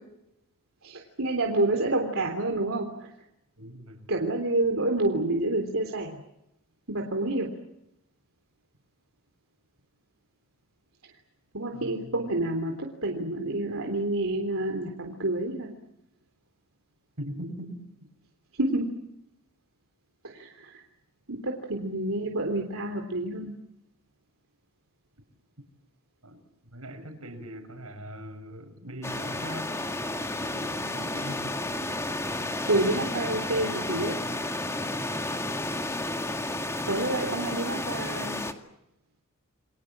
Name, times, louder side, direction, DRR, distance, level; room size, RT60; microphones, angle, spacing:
voice 1, 0.8-3.1 4.1-6.2 6.9-7.5 11.5-15.8 18.6-18.9 20.2-20.8 21.3-23.5 32.7-34.2 36.9-38.4, right 2 dB, 70° right, 2 dB, 3.6 m, -28 dB
voice 2, 3.6-4.1 11.7-12.3 17.2-18.1 25.6-25.7 26.2-26.4 26.7-29.8 30.4-31.6, equal, 90° right, 7 dB, 6.7 m, -41 dB
sound 1, 29.0-38.5, left 2 dB, 15° left, 2.1 m, -32 dB
30.0 x 23.0 x 7.5 m, 0.84 s
head